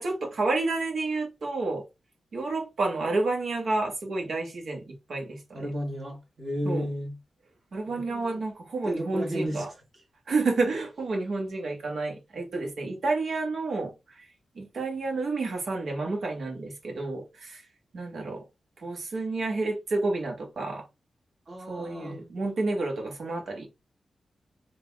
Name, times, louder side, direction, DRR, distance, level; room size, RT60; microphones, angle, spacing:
voice 1, 0.0-1.8 2.3-5.6 6.6-6.8 7.7-9.7 10.3-14.3 14.5-17.6 17.9-18.4 18.8-20.8 21.7-23.7, right 3 dB, 70° right, 1.7 m, -30 dB
voice 2, 5.5-7.2 7.9-8.4 8.8-9.7 21.5-22.2, equal, 50° right, 2.3 m, -33 dB
3.9 x 2.9 x 3.6 m
wide cardioid pair, 90°, 0 cm